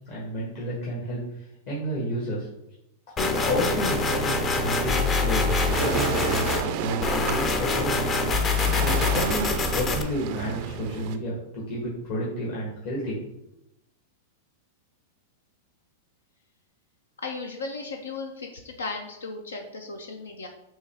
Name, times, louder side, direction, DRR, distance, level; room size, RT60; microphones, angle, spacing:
voice 1, 0.1-1.2 1.7-2.5 3.2-8.0 8.8-13.2, equal, 60° left, -6 dB, 1.3 m, -31 dB
sound 1, 3.2-6.6 7.0-10.0, left 3 dB, 30° left, 0.5 m, -25 dB
Waves surf, 4.9-11.2, right 9 dB, 55° right, 0.4 m, -32 dB
voice 2, 17.2-20.5, left 3 dB, 90° left, 4 dB, 0.5 m, -36 dB
6.1 x 2.2 x 3.4 m, 0.88 s
hypercardioid pair, 110°, 0 cm